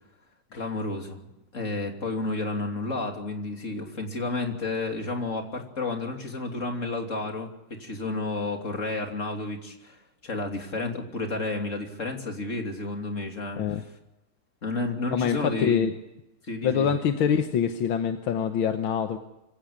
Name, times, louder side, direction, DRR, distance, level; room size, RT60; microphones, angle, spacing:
voice 1, 0.5-10.0 10.2-13.6 14.6-15.9 16.4-16.9, left 2 dB, 40° left, 3 dB, 3.3 m, -31 dB
voice 2, 15.1-15.9 16.6-19.2, left 8 dB, 85° left, 6 dB, 2.0 m, -25 dB
25.0 x 16.5 x 8.5 m, 0.93 s
omnidirectional pair, 2.2 m